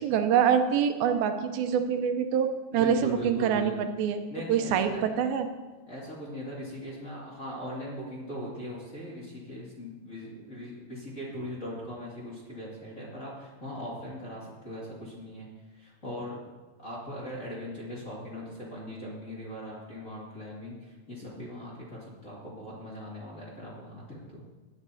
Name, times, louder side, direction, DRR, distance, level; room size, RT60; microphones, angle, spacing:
voice 1, 0.0-4.2 4.5-5.5, right 8 dB, 85° right, 7 dB, 2.6 m, -25 dB
voice 2, 2.7-3.7 4.3-5.0 5.9-15.5 15.7-16.4 16.8-24.4, equal, 25° left, -7 dB, 2.1 m, -40 dB
17.5 x 9.9 x 2.8 m, 1.3 s
omnidirectional pair, 4.2 m